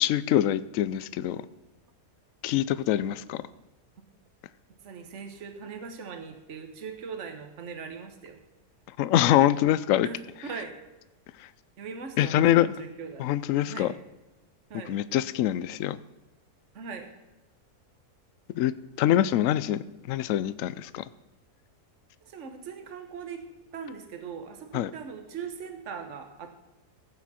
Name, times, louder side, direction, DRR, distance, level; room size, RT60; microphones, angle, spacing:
voice 1, 0.0-1.4 2.4-3.4 9.0-10.1 11.4-11.5 12.2-12.7 13.2-13.9 14.9-16.0 18.6-21.0 24.7-24.9, left 12 dB, 70° left, 16 dB, 0.9 m, -24 dB
voice 2, 4.8-8.4 10.0-10.8 11.8-13.3 13.7-13.9 14.7-15.0 16.7-17.1 22.2-23.5 23.7-26.5, right 6 dB, 50° right, 6 dB, 1.5 m, -40 dB
16.5 x 8.6 x 4.3 m, 1.0 s
omnidirectional pair, 1.7 m